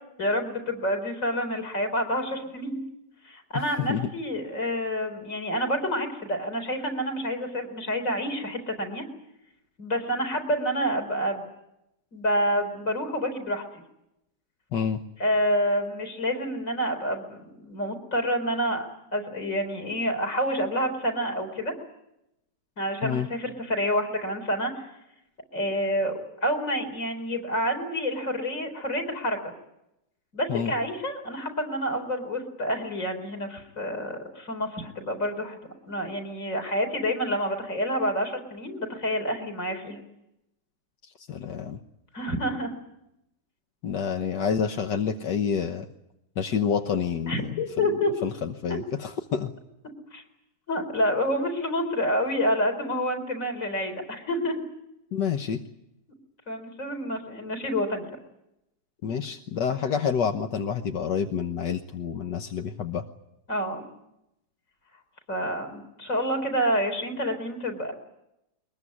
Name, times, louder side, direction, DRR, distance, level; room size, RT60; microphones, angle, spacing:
voice 1, 0.2-2.8 3.2-9.0 9.8-11.5 12.1-13.6 15.2-18.8 19.1-21.7 22.8-24.9 25.5-29.5 30.3-35.6 35.9-40.0 42.1-42.7 47.3-48.1 48.7-48.8 50.1-50.2 50.7-54.6 56.5-58.1 63.5-63.9 65.3-67.9, equal, 50° left, 3 dB, 4.9 m, -28 dB
voice 2, 41.2-41.8 43.8-45.9 46.4-47.6 47.9-49.5 55.1-55.6 59.0-63.0, left 7 dB, 85° left, 6 dB, 1.8 m, -28 dB
23.0 x 21.5 x 9.8 m, 0.86 s
omnidirectional pair, 1.8 m